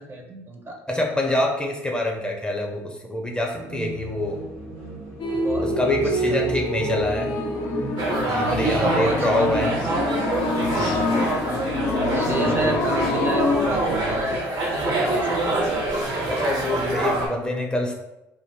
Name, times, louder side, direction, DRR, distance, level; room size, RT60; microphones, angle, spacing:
voice 1, 0.0-0.8 5.3-5.7 6.0-6.5 7.5-7.8 8.4-10.0 12.1-14.4 14.8-15.6, right 1 dB, 30° right, 3 dB, 0.6 m, -30 dB
voice 2, 0.9-4.4 5.6-7.3 8.2-9.7 10.8-11.2 12.5-12.8 16.3-17.9, left 1 dB, 10° left, 1 dB, 0.5 m, -26 dB
sound 1, 3.5-14.3, right 2 dB, 80° right, 1.2 m, -36 dB
sound 2, 5.2-13.7, left 2 dB, 65° left, 0.4 m, -26 dB
sound 3, 8.0-17.3, right 2 dB, 65° right, 0.8 m, -26 dB
2.5 x 2.4 x 3.2 m, 0.94 s
hypercardioid pair, 65°, 8 cm